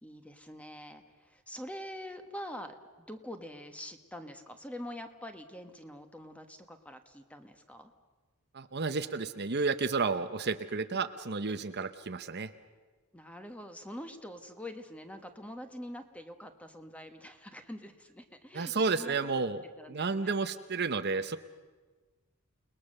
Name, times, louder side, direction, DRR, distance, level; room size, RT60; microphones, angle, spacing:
voice 1, 0.0-7.9 10.9-11.0 13.1-19.4 19.8-20.4, left 1 dB, 5° left, 7 dB, 1.5 m, -45 dB
voice 2, 8.5-12.5 18.5-19.6 19.9-21.4, right 4 dB, 50° right, 10 dB, 0.9 m, -31 dB
29.5 x 20.0 x 6.7 m, 1.3 s
head